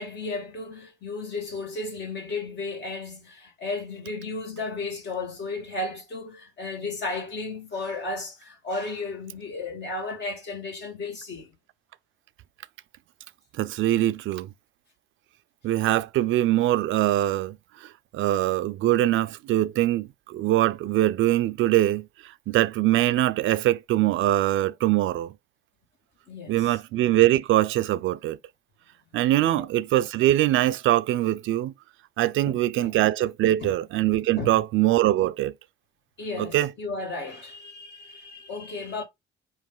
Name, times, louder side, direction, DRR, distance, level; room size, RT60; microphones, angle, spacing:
voice 1, 0.0-11.6 26.3-26.8 29.4-29.7 32.5-32.9 33.6-33.7 34.4-34.6 36.2-39.0, left 3 dB, 60° left, 2.1 m, -34 dB
voice 2, 13.6-14.5 15.6-25.3 26.5-28.4 29.1-31.7 32.2-35.5 36.4-36.7, right 14 dB, 80° right, 0.4 m, -23 dB
4.6 x 3.1 x 3.7 m
cardioid pair, 90°, 20 cm